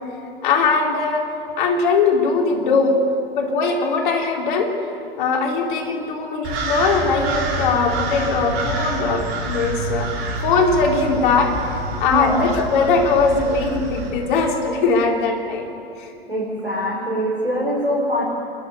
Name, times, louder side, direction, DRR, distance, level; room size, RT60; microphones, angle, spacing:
voice 1, 0.4-1.3 1.6-3.0 3.4-4.7 5.2-10.1 10.4-11.5 12.0-15.7 16.0-16.1, left 4 dB, 55° left, 1 dB, 3.8 m, -20 dB
sound 1, 6.4-14.1, right 2 dB, 40° right, 5.0 m, -27 dB
voice 2, 12.1-12.4 16.3-18.2, equal, 90° right, -5 dB, 5.0 m, -23 dB
28.0 x 12.5 x 9.6 m, 2.6 s
figure-of-eight pair, 95°, 30 cm